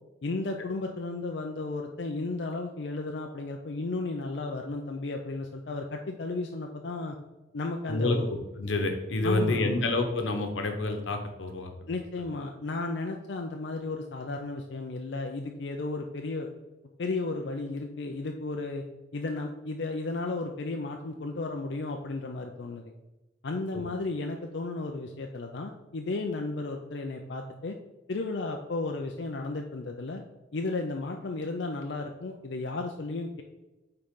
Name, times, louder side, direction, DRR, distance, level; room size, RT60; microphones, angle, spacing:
voice 1, 0.2-7.2 7.5-8.3 9.2-9.9 11.9-16.5 17.0-18.8 19.1-22.9 23.4-27.8 28.1-30.2 30.5-33.4, left 3 dB, 65° left, 2 dB, 0.5 m, -34 dB
voice 2, 7.9-11.7, left 2 dB, 90° left, 5 dB, 1.0 m, -28 dB
8.8 x 3.8 x 3.7 m, 1.1 s
head